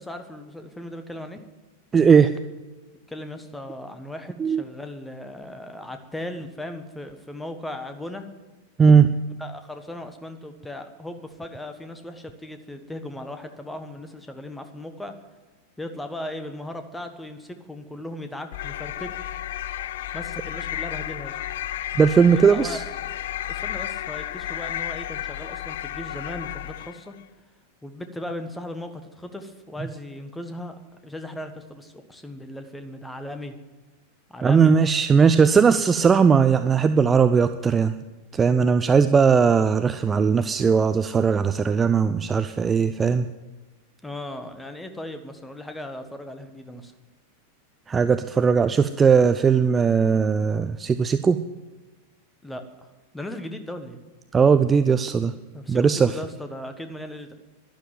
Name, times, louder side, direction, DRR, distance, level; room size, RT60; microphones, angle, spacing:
voice 1, 0.0-1.4 3.1-8.2 9.4-15.1 15.8-19.2 20.1-21.4 22.3-22.8 23.5-27.1 27.8-33.6 34.3-34.7 44.0-46.9 52.4-52.9 53.1-54.0 55.5-57.3, left 1 dB, 5° left, 8 dB, 1.5 m, -37 dB
voice 2, 1.9-2.3 4.4-4.6 8.8-9.1 22.0-22.8 34.4-37.9 38.3-43.3 47.9-51.4 54.3-55.3 55.7-56.1, right 6 dB, 20° right, 10 dB, 0.6 m, -18 dB
sound 1, 18.5-27.1, left 12 dB, 55° left, 0.5 m, -32 dB
12.0 x 11.5 x 9.2 m, 1.2 s
figure-of-eight pair, 90°, 0 cm